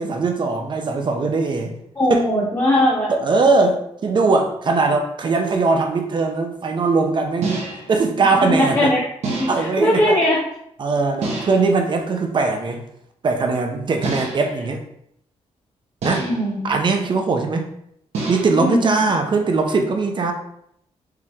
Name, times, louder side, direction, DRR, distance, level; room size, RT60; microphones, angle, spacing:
voice 1, 0.0-1.7 2.1-2.2 3.1-7.6 7.9-8.9 9.5-10.2 10.8-12.8 13.2-14.8 16.0-16.3 16.6-17.7 18.3-20.3, right 3 dB, 45° right, 4 dB, 0.7 m, -20 dB
voice 2, 2.0-3.1 8.5-9.0 9.3-10.4 16.2-16.8 18.6-18.9, left 1 dB, 20° left, -8 dB, 1.0 m, -19 dB
sound 1, 5.5-5.7 7.4-8.0 9.2-9.8 11.2-11.8 14.0-14.6 16.0-16.6 18.1-18.7, right 3 dB, 75° right, 1.2 m, -28 dB
4.7 x 3.0 x 3.6 m, 0.72 s
wide cardioid pair, 130°, 11 cm